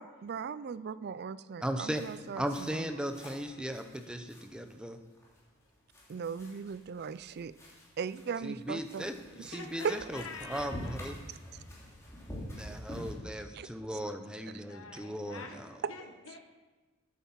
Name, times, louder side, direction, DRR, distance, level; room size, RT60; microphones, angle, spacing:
voice 1, 0.0-2.4 6.1-7.5 8.0-9.1 13.6-13.7, right 6 dB, 50° right, 15 dB, 0.4 m, -39 dB
voice 2, 1.6-2.0 2.4-5.0 8.4-11.2 12.5-15.7, equal, 5° right, 7 dB, 0.7 m, -37 dB
sound 1, 1.9-13.1, equal, 15° left, 3.3 m, -48 dB
voice 3, 9.5-11.1 11.6-11.8 14.7-16.4, left 4 dB, 65° left, 3 dB, 1.3 m, -46 dB
9.4 x 8.6 x 7.2 m, 1.2 s
head